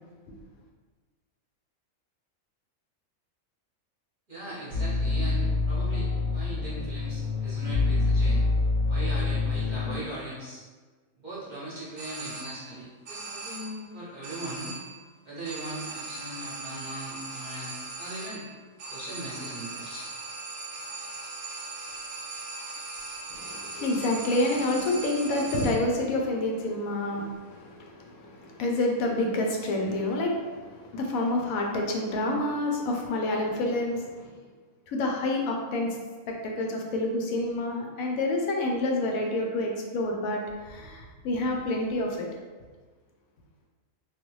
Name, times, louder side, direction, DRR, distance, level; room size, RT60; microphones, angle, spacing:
voice 1, 4.3-8.4 8.9-10.6 11.2-14.8 15.2-18.4 18.9-20.1 23.8-23.9, right 1 dB, 40° right, -9 dB, 0.8 m, -39 dB
sound 1, 4.7-10.0, left 3 dB, 30° left, 0.8 m, -26 dB
sound 2, 12.0-12.8 13.1-13.9 14.2-15.1 15.4-26.0, right 3 dB, 70° right, 0.9 m, -39 dB
voice 2, 23.3-34.3 34.9-36.0 36.3-42.3, left 2 dB, 75° left, 1 dB, 1.0 m, -28 dB
3.2 x 2.3 x 3.0 m, 1.4 s
omnidirectional pair, 1.6 m